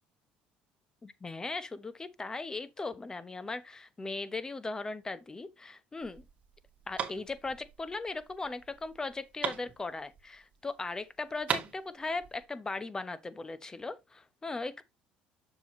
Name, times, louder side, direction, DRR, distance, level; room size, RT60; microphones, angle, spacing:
voice 1, 1.0-6.2 6.9-14.8, left 3 dB, 20° left, 1.0 m, -38 dB
sound 1, 6.0-10.6 10.8-10.9 11.2-12.4, right 7 dB, 45° right, 2.1 m, -38 dB
7.1 x 6.9 x 3.0 m
supercardioid pair, 90°, 3 cm